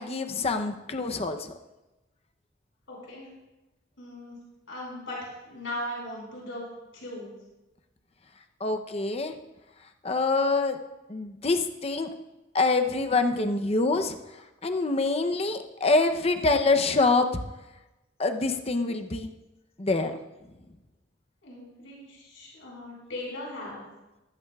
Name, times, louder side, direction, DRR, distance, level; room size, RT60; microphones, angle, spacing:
voice 1, 0.0-1.5 8.6-9.3 10.0-10.8 11.1-12.1 12.5-14.2 14.6-17.3 18.2-19.3 19.8-20.1, left 3 dB, 35° left, 7 dB, 0.7 m, -25 dB
voice 2, 2.9-3.3 4.0-4.4 4.7-6.7 6.9-7.3 21.4-23.8, left 1 dB, 90° left, -3 dB, 4.8 m, -38 dB
15.0 x 14.0 x 2.4 m, 1.0 s
head